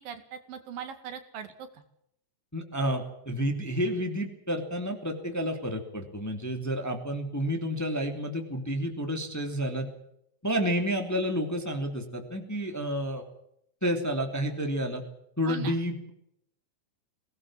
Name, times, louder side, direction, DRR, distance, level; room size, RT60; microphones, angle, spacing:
voice 1, 0.0-1.8 15.5-15.8, right 8 dB, 80° right, 8 dB, 3.9 m, -40 dB
voice 2, 2.5-9.9 10.4-13.2 13.8-15.0 15.4-16.1, equal, 5° left, 4 dB, 2.3 m, -30 dB
23.0 x 18.5 x 7.5 m, 0.74 s
omnidirectional pair, 3.9 m